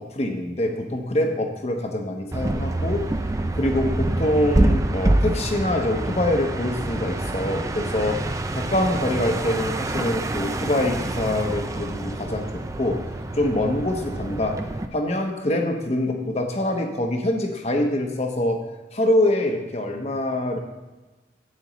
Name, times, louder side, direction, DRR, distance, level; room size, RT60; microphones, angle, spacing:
voice 1, 0.0-3.0 3.5-8.2 8.5-12.5 12.8-13.0 13.3-14.7 14.9-18.7 18.9-20.6, left 1 dB, 35° left, 4 dB, 0.9 m, -24 dB
sound 1, 2.3-14.9, right 1 dB, 15° right, 0.4 m, -26 dB
11.0 x 8.4 x 3.1 m, 1.1 s
head